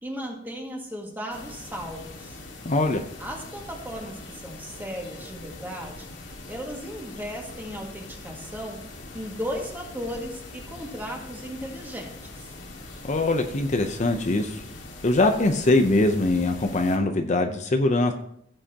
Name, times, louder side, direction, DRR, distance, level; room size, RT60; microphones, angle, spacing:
voice 1, 0.0-2.4 3.2-8.8 9.1-12.2, equal, 10° right, 0 dB, 2.0 m, -36 dB
sound 1, 1.3-17.0, left 2 dB, 75° left, 2.0 m, -42 dB
voice 2, 2.6-3.0 13.0-14.6 15.0-18.1, left 2 dB, 40° left, 5 dB, 0.7 m, -22 dB
16.0 x 7.7 x 2.9 m, 0.72 s
head